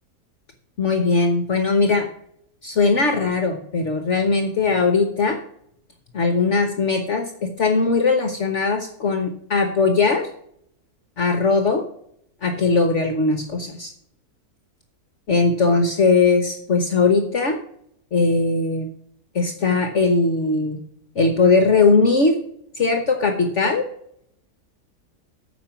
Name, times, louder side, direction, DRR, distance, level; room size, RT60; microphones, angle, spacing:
voice 1, 0.8-2.1 2.6-5.4 6.1-10.3 11.2-11.8 12.4-13.9 15.3-17.6 18.1-18.9 19.3-20.8 21.1-22.4 22.8-23.8, left 4 dB, 50° left, 6 dB, 1.4 m, -19 dB
14.0 x 5.3 x 5.9 m, 0.70 s
omnidirectional pair, 1.7 m